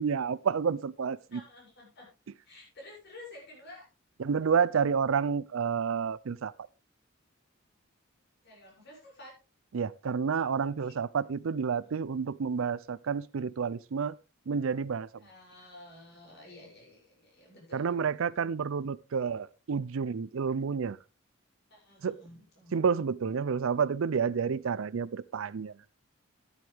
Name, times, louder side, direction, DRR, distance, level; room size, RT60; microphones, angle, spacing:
voice 1, 0.0-1.4 4.2-6.5 9.7-14.2 14.5-15.1 17.7-21.0 22.0-22.2 22.7-25.7, right 6 dB, 75° right, 0.5 m, -29 dB
voice 2, 1.3-2.1 2.4-3.9 8.4-9.3 10.8-10.9 15.2-18.1 21.7-22.7, left 2 dB, 55° left, 7.0 m, -51 dB
12.5 x 11.0 x 3.5 m
head